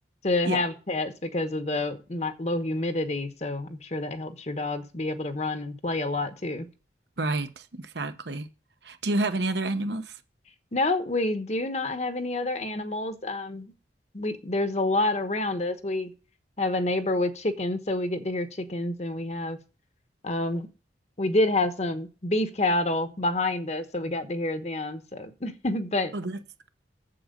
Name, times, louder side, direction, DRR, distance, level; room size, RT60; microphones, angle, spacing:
voice 1, 0.2-6.7 10.7-13.7 14.1-16.1 16.6-19.6 20.2-20.7 21.2-26.1, left 2 dB, 40° left, 1.0 m, -28 dB
voice 2, 7.2-8.5 8.8-10.2 26.1-26.4, right 2 dB, 70° right, 1.1 m, -29 dB
7.8 x 7.7 x 5.2 m
head